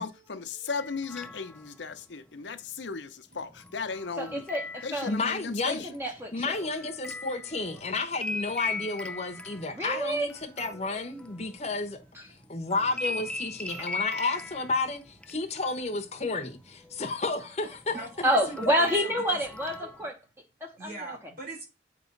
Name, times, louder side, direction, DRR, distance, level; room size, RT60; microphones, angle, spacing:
voice 1, 0.0-4.5 4.8-6.0, left 4 dB, 80° left, 0.7 m, -36 dB
sound 1, 0.7-1.7 3.3-5.4 5.9-12.1 12.4-15.3 15.6-16.5 16.8-17.1 17.6-20.1, left 3 dB, 5° left, 0.4 m, -40 dB
voice 2, 4.2-5.1 5.7-6.6 9.7-10.3 12.1-12.3 13.8-13.9 17.9-20.2 20.6-21.2, equal, 15° right, 0.8 m, -29 dB
voice 3, 5.1-5.8 6.3-12.0 12.5-15.0 15.3-18.0, left 3 dB, 35° left, 0.8 m, -31 dB
voice 4, 18.0-19.4 20.8-21.6, right 2 dB, 50° right, 4.0 m, -40 dB
8.0 x 3.0 x 5.2 m
head